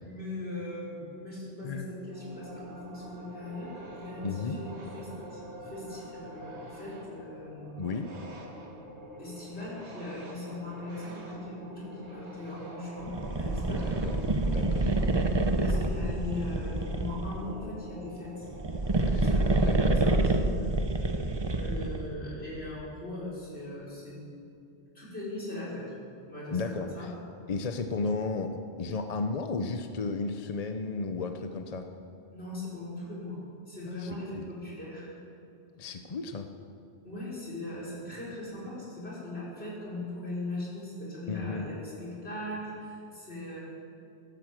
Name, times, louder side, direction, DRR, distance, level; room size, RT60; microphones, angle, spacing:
voice 1, 0.0-7.8 9.2-14.0 15.6-18.5 18.8-21.3 21.6-24.3 24.9-25.9 26.3-27.1 32.3-33.4 33.7-35.1 37.0-43.6, left 2 dB, 65° left, -6 dB, 5.3 m, -39 dB
sound 1, 2.1-19.7, right 1 dB, 75° right, 1.9 m, -46 dB
voice 2, 4.2-4.6 7.8-8.1 13.7-14.2 14.4-14.9 19.1-20.0 26.5-27.1 27.5-31.9 33.9-34.5 35.8-36.5 41.3-41.7, left 4 dB, 40° left, 6 dB, 0.7 m, -34 dB
sound 2, 13.1-17.5 18.4-22.1, right 2 dB, 25° right, 0.7 m, -27 dB
16.0 x 11.0 x 7.5 m, 2.6 s
omnidirectional pair, 1.1 m